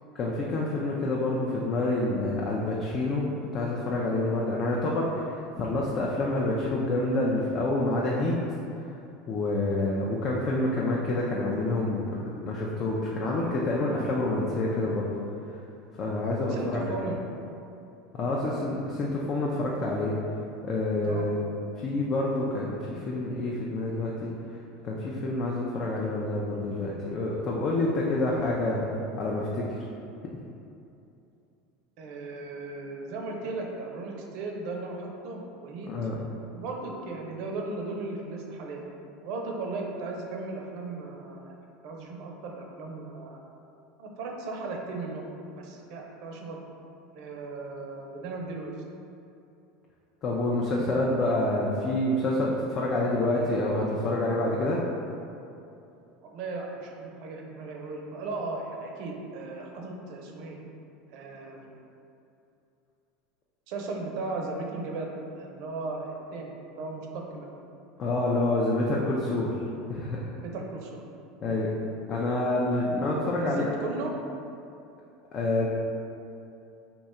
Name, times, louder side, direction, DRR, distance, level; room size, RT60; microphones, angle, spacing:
voice 1, 0.1-3.3 3.5-8.3 9.3-15.1 16.0-16.9 18.1-20.1 20.6-21.4 21.8-24.3 24.8-28.9 29.2-29.6 35.9-36.3 50.2-54.8 68.0-69.5 69.9-70.3 71.4-71.7 72.1-73.7 75.3-75.7, left 2 dB, 40° left, -3 dB, 0.4 m, -27 dB
voice 2, 16.5-17.2 21.0-21.3 32.0-35.9 36.5-38.8 39.2-41.5 41.8-43.4 44.0-45.2 45.6-46.6 47.1-48.7 56.2-60.6 61.1-61.8 63.7-67.5 70.4-71.0 73.4-74.2, right 3 dB, 60° right, 0 dB, 0.5 m, -36 dB
2.7 x 2.2 x 4.1 m, 2.7 s
supercardioid pair, 105°, 0 cm